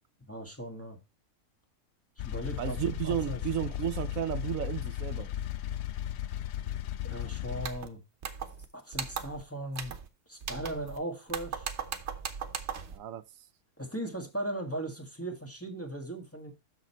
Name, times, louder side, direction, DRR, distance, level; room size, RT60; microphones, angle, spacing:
voice 1, 0.3-1.0 2.2-2.8 3.0-3.4 7.0-8.0 8.7-10.0 10.3-11.7 13.8-16.5, right 1 dB, 10° left, 1.5 m, -38 dB
sound 1, 2.2-7.7, left 12 dB, 65° left, 0.7 m, -35 dB
voice 2, 2.6-5.3 12.9-13.2, right 11 dB, 80° right, 1.0 m, -33 dB
sound 2, 7.6-7.9 8.2-8.7 8.9-9.4 9.7-10.1 10.4-11.0 11.3-13.0, right 7 dB, 60° right, 1.1 m, -38 dB
6.6 x 6.5 x 4.3 m
omnidirectional pair, 1.4 m